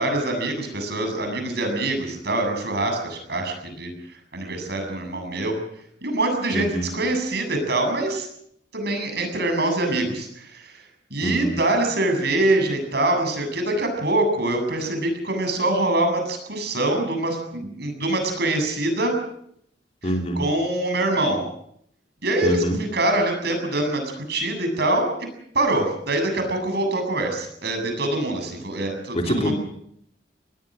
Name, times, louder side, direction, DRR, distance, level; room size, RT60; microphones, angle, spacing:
voice 1, 0.0-3.9 4.3-5.6 6.0-8.3 8.7-10.8 11.1-19.1 20.4-21.4 22.2-22.6 22.9-25.1 25.5-29.5, right 2 dB, 65° right, 5 dB, 7.7 m, -24 dB
voice 2, 6.5-6.9 11.2-11.5 20.0-20.4 22.4-22.8 29.1-29.5, equal, 35° left, 3 dB, 3.1 m, -25 dB
25.5 x 20.0 x 6.4 m, 0.72 s
head